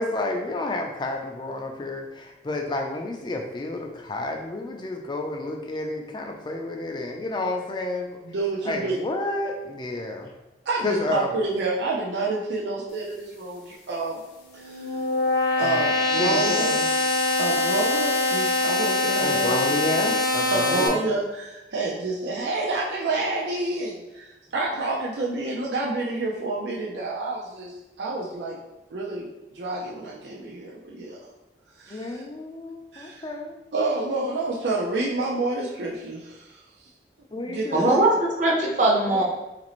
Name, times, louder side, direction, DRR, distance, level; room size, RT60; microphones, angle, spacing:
voice 1, 0.0-8.2 8.6-10.3 10.8-11.3 15.6-15.8 16.2-16.9 19.2-21.1 31.9-33.5 34.2-34.3 37.3-38.0, left 2 dB, 25° left, 2 dB, 0.4 m, -30 dB
voice 2, 8.2-9.0 10.7-14.2 14.5-14.9 15.6-16.8 17.4-19.7 20.5-27.7 28.0-28.6 28.9-29.3 29.5-31.2 31.8-32.2 32.9-33.3 33.7-36.6 37.4-38.0, right 2 dB, 80° right, -3 dB, 0.5 m, -28 dB
sound 1, 14.4-20.9, left 2 dB, 60° left, 0.7 m, -23 dB
voice 3, 37.7-39.2, right 2 dB, 45° right, -1 dB, 0.7 m, -20 dB
3.9 x 2.5 x 3.0 m, 0.99 s
head